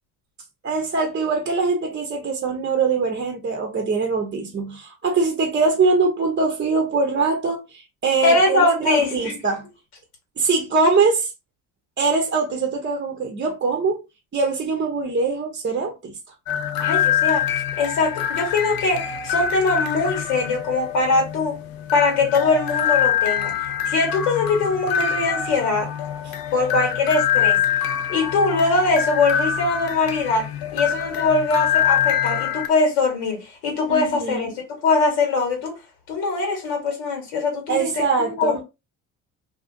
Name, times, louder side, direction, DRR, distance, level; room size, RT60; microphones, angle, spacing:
voice 1, 0.6-9.7 10.4-11.3 12.0-14.0 14.3-16.1 33.9-34.5 37.7-38.6, right 4 dB, 30° right, 0.6 m, -22 dB
voice 2, 8.2-9.3 16.8-17.4 17.8-21.5 21.9-23.5 23.8-25.9 26.5-27.6 28.1-34.5 34.8-35.7 36.1-38.0 38.4-38.6, left 3 dB, 80° left, 1.3 m, -21 dB
sound 1, 16.5-32.7, left 9 dB, 60° left, 0.5 m, -25 dB
2.4 x 2.4 x 2.5 m
hypercardioid pair, 60°, 41 cm